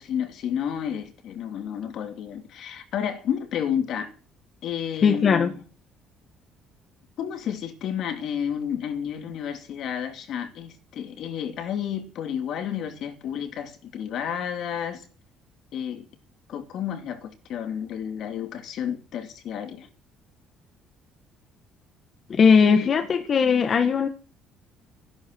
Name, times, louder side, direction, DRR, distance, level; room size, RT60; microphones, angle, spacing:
voice 1, 0.0-4.1 4.6-5.6 7.2-15.1 15.7-16.1 16.5-19.9 22.6-22.9, left 8 dB, 60° left, 2.8 m, -31 dB
voice 2, 5.0-5.5 22.3-24.1, left 6 dB, 40° left, 1.5 m, -19 dB
14.5 x 11.5 x 7.9 m
cardioid pair, 135°, 0 cm